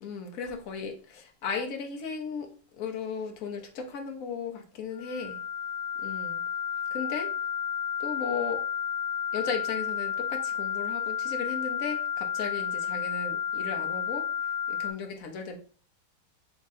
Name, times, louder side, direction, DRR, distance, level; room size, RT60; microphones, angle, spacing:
voice 1, 0.0-2.5 2.8-5.4 6.0-6.4 6.9-7.3 8.0-8.6 9.3-14.2 14.7-15.6, left 5 dB, 55° left, 3 dB, 1.0 m, -36 dB
sound 1, 5.0-14.9, left 8 dB, 85° left, 1.5 m, -32 dB
3.7 x 3.6 x 4.0 m, 0.41 s
omnidirectional pair, 2.1 m